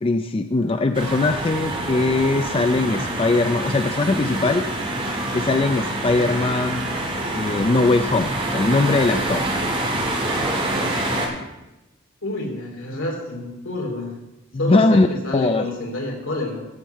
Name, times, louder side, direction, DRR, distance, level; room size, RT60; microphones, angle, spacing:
voice 1, 0.0-4.7 5.3-6.9 7.3-9.4 14.5-15.1 15.3-15.6, left 3 dB, 25° left, 8 dB, 0.4 m, -20 dB
sound 1, 0.9-11.3, right 1 dB, 25° right, 1.8 m, -26 dB
voice 2, 12.2-14.1 14.6-16.7, left 1 dB, 75° left, -1 dB, 3.2 m, -28 dB
15.0 x 7.4 x 4.6 m, 0.99 s
head